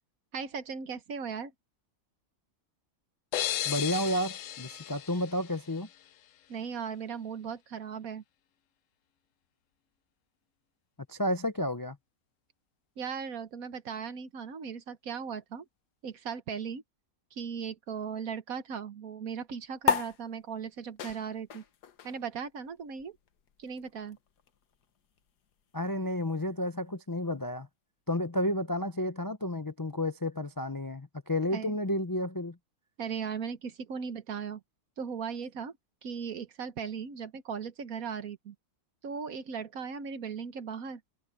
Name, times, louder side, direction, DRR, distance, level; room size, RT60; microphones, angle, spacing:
voice 1, 0.3-1.5 6.5-8.2 13.0-15.6 16.0-16.8 17.3-21.6 22.0-23.2 23.6-24.2 31.5-31.8 33.0-34.6 35.0-35.7 36.0-38.5 39.0-41.0, right 6 dB, 60° right, 1.5 m, -37 dB
sound 1, 3.3-6.1, left 11 dB, 65° left, 0.9 m, -35 dB
voice 2, 3.6-5.9 11.1-12.0 25.7-27.7 28.1-32.6, left 1 dB, 25° left, 0.4 m, -31 dB
sound 2, 19.8-26.6, left 6 dB, 80° left, 1.7 m, -36 dB
omnidirectional pair, 1.7 m